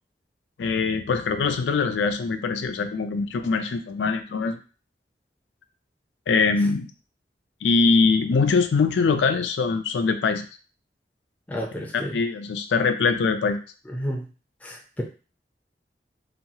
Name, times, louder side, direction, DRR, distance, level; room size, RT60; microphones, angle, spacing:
voice 1, 0.6-4.6 6.3-6.9 7.6-10.5 11.9-13.6, left 4 dB, 90° left, 8 dB, 0.4 m, -22 dB
voice 2, 11.5-12.2 13.9-14.3 14.6-15.0, equal, 10° left, 0 dB, 0.4 m, -31 dB
2.9 x 2.3 x 2.7 m, 0.36 s
head